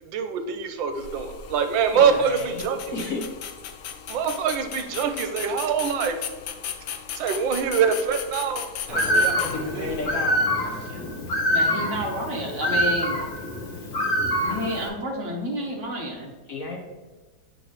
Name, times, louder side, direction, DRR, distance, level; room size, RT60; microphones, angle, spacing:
voice 1, 0.0-2.9 4.1-6.2 7.2-9.9, right 6 dB, 85° right, 8 dB, 1.4 m, -25 dB
sound 1, 0.9-10.1, left 9 dB, 90° left, 1.4 m, -37 dB
voice 2, 1.9-2.6 2.9-3.2 9.4-10.5 16.5-16.8, left 3 dB, 55° left, 0 dB, 1.0 m, -32 dB
Bird, 8.9-14.9, equal, 35° left, 1.0 m, -25 dB
voice 3, 11.4-13.2 14.4-16.3, equal, 50° right, 0 dB, 1.1 m, -30 dB
8.0 x 5.3 x 3.0 m, 1.3 s
omnidirectional pair, 2.1 m